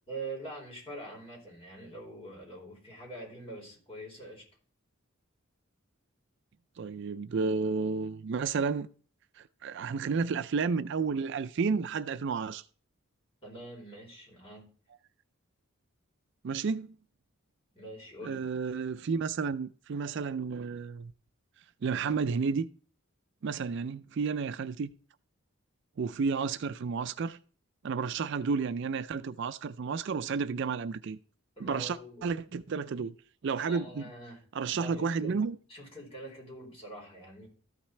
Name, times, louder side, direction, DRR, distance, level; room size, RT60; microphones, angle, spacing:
voice 1, 0.1-4.4 13.4-14.7 17.7-18.4 31.6-32.6 33.6-34.5 34.8-37.5, right 1 dB, 30° left, 4.1 m, -44 dB
voice 2, 6.8-8.9 9.4-12.6 16.4-17.0 18.2-21.1 21.8-22.7 23.4-24.9 26.0-27.4 27.8-31.2 31.6-32.0 32.2-33.2 33.4-34.0 34.5-35.6, right 5 dB, 60° right, 0.4 m, -31 dB
13.5 x 5.9 x 3.2 m
head